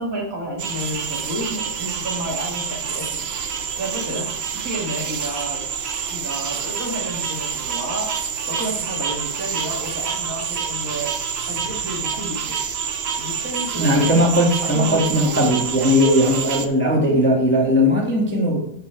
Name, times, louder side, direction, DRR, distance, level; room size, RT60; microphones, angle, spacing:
voice 1, 0.0-3.2 3.8-5.6 6.1-8.1 8.5-11.2 11.5-12.6 13.2-14.3 14.6-15.4 16.2-16.4, right 1 dB, 45° right, 0 dB, 2.3 m, -31 dB
sound 1, 0.6-16.7, right 7 dB, 90° right, 0.5 m, -27 dB
voice 2, 13.8-18.6, equal, 5° left, -2 dB, 1.6 m, -18 dB
11.0 x 5.9 x 4.6 m, 0.73 s
omnidirectional pair, 2.1 m